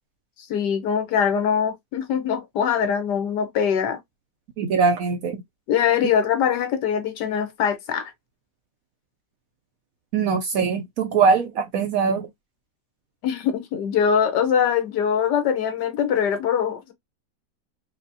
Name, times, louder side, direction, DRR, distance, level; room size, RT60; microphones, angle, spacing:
voice 1, 0.5-4.0 5.7-8.1 13.2-16.9, left 8 dB, 75° left, 1.4 m, -22 dB
voice 2, 4.6-5.4 10.1-12.3, right 5 dB, 70° right, 0.8 m, -21 dB
4.9 x 2.2 x 2.6 m
omnidirectional pair, 1.9 m